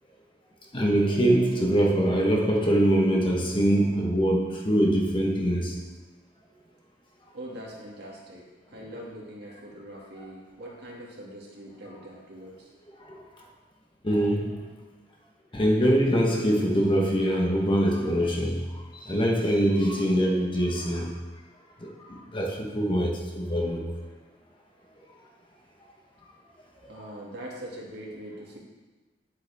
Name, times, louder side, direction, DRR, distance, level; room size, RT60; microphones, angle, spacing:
voice 1, 0.7-5.8 13.1-13.2 14.0-14.6 15.5-18.6 18.9-21.1 21.8-23.8, right 1 dB, 25° left, 0 dB, 1.2 m, -23 dB
voice 2, 7.3-12.7 26.8-28.6, right 1 dB, 60° right, -4 dB, 2.4 m, -42 dB
10.5 x 8.1 x 3.6 m, 1.3 s
head